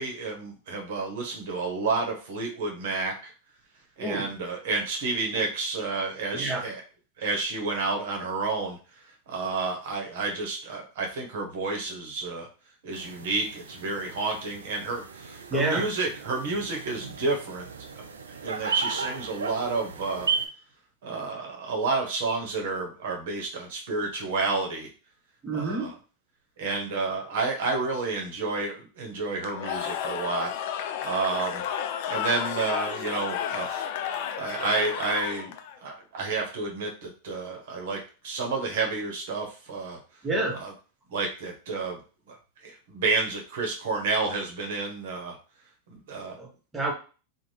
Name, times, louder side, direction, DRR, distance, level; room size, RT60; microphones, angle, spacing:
voice 1, 0.0-3.3 4.0-6.8 7.2-8.8 9.3-12.5 12.8-17.7 17.9-18.0 18.4-20.3 21.0-24.9 25.5-25.9 26.6-30.5 31.0-31.6 32.1-33.8 34.4-35.5 35.8-38.0 38.2-40.0 40.6-40.7 41.1-42.0 42.3-42.4 42.6-45.4 46.1-46.4, right 3 dB, 65° right, 1 dB, 0.8 m, -30 dB
voice 2, 4.0-4.3 6.3-6.6 15.5-15.9 25.4-25.9 40.2-40.6 46.4-46.9, right 2 dB, 15° right, -1 dB, 0.8 m, -28 dB
sound 1, 12.9-20.5, right 5 dB, 85° right, 0.4 m, -35 dB
Cheering / Crowd, 29.4-35.8, left 9 dB, 60° left, 0.3 m, -32 dB
2.5 x 2.1 x 3.2 m, 0.36 s
hypercardioid pair, 100°, 0 cm